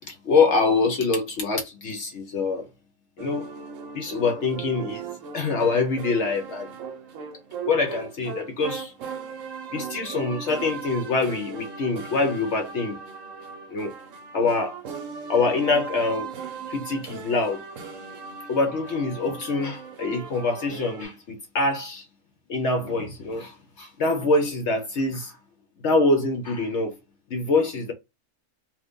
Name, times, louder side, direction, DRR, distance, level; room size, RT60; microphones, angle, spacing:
voice 1, 0.1-2.7 3.2-3.5 3.9-5.0 5.3-6.7 7.6-8.9 9.7-13.0 13.7-13.9 14.3-14.8 15.3-16.3 16.7-17.6 18.5-22.0 22.5-25.4 25.8-26.9 27.3-27.9, left 3 dB, 60° left, 0.8 m, -24 dB
sound 1, 3.2-21.0, right 6 dB, 65° right, 1.0 m, -38 dB
2.6 x 2.5 x 3.5 m
omnidirectional pair, 1.5 m